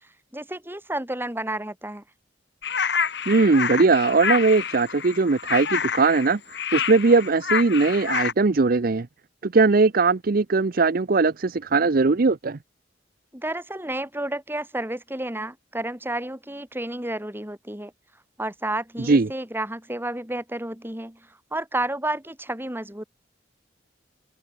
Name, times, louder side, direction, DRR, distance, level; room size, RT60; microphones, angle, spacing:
voice 1, 0.3-2.0 13.3-17.9 18.4-21.2 21.5-23.0, right 1 dB, 10° right, 3.7 m, -31 dB
sound 1, 2.6-8.3, left 6 dB, 65° left, 2.5 m, -28 dB
voice 2, 3.3-6.4 6.7-9.1 9.4-12.6 19.0-19.3, right 3 dB, 50° right, 0.6 m, -20 dB
open air
head